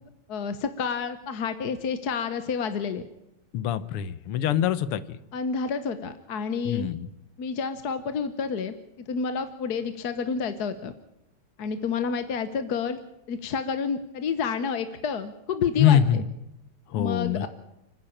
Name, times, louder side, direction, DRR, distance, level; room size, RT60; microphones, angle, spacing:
voice 1, 0.3-3.0 5.3-6.9 7.4-8.7 9.1-10.9 11.6-13.0 13.3-16.2 16.9-17.5, left 6 dB, 55° left, 11 dB, 1.3 m, -29 dB
voice 2, 3.5-5.2 6.7-7.1 15.8-16.2 16.9-17.5, left 10 dB, 85° left, 16 dB, 1.9 m, -24 dB
30.0 x 10.5 x 8.8 m, 0.87 s
omnidirectional pair, 2.4 m